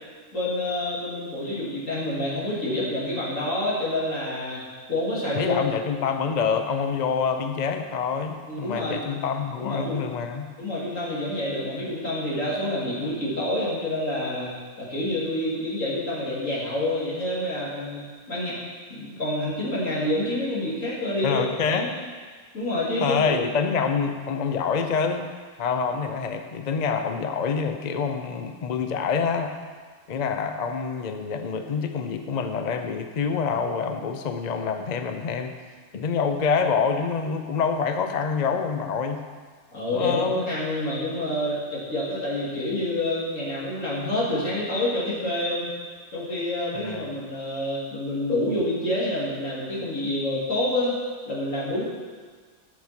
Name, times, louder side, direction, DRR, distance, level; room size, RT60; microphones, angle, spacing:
voice 1, 0.3-4.6 4.9-5.6 8.5-9.1 9.6-10.1 10.6-14.5 14.8-18.5 18.9-21.9 22.5-23.3 39.7-45.7 46.1-50.9 51.3-51.8, left 1 dB, 80° left, -7 dB, 3.2 m, -28 dB
voice 2, 5.3-10.5 21.2-21.9 23.0-25.3 25.6-29.5 30.1-35.5 35.9-39.2 39.9-40.4 46.8-47.1, left 6 dB, 45° left, 6 dB, 0.6 m, -26 dB
13.0 x 6.5 x 4.4 m, 1.5 s
omnidirectional pair, 1.3 m